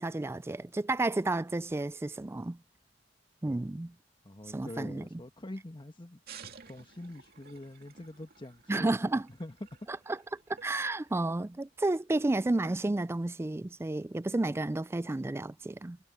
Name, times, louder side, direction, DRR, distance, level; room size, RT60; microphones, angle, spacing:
voice 1, 0.0-2.6 3.4-3.9 4.5-5.2 8.7-9.3 9.9-16.0, right 2 dB, 15° right, 0.3 m, -31 dB
voice 2, 4.2-6.2 6.7-9.0 9.4-9.5, left 1 dB, 25° left, 1.5 m, -45 dB
sound 1, 6.3-11.9, right 6 dB, 55° right, 2.5 m, -54 dB
head